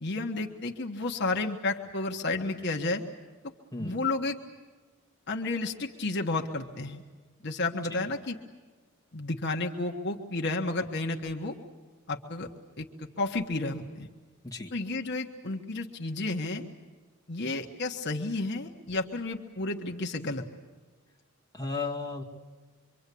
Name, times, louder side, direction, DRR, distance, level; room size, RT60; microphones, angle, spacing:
voice 1, 0.0-3.0 3.8-4.4 5.3-7.0 7.4-8.4 9.1-11.6 12.1-12.5 12.8-14.1 14.7-16.6 17.3-20.4, left 2 dB, 50° left, 2 dB, 1.4 m, -31 dB
voice 2, 21.5-22.2, left 3 dB, 15° left, -2 dB, 2.1 m, -34 dB
25.5 x 24.5 x 8.5 m, 1.4 s
head